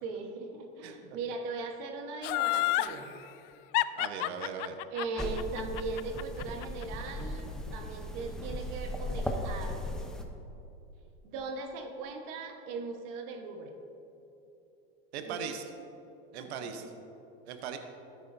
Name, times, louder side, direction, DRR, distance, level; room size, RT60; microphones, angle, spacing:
voice 1, 0.0-3.1 4.9-10.1 11.2-13.7 15.2-15.6 16.4-16.9, right 4 dB, 60° right, 4 dB, 1.3 m, -39 dB
Laughter, 2.2-2.9 3.7-6.8 7.2-7.3, left 18 dB, 60° left, 0.4 m, -29 dB
voice 2, 4.0-4.8 15.1-15.7 16.3-16.8 17.5-17.8, right 7 dB, 85° right, 6 dB, 1.0 m, -39 dB
sound 1, 5.2-10.2, left 1 dB, ahead, 0.7 m, -37 dB
14.0 x 9.4 x 2.7 m, 2.9 s
supercardioid pair, 120°, 32 cm